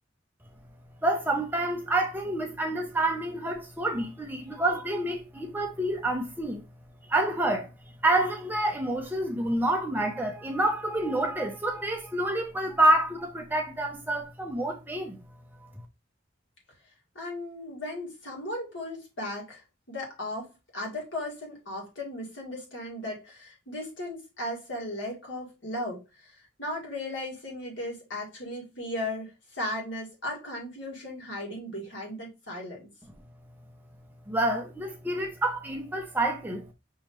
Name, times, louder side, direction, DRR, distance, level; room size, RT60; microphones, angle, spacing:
voice 1, 1.0-6.6 7.1-7.7 8.0-15.2 34.3-36.6, right 1 dB, 10° right, 0.7 m, -28 dB
voice 2, 17.1-32.9, left 1 dB, 70° left, 2.1 m, -36 dB
5.5 x 3.1 x 3.0 m
head